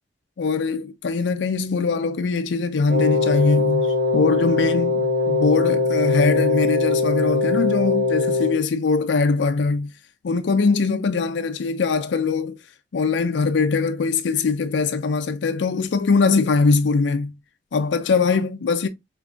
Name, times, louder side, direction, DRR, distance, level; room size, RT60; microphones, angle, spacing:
voice 1, 0.4-9.9 10.2-12.6 12.9-17.3 17.7-18.9, left 4 dB, 90° left, 0.4 m, -22 dB
Wind instrument woodwind instrument, 2.9-8.6, left 3 dB, 60° right, 0.5 m, -21 dB
5.1 x 2.5 x 2.3 m
head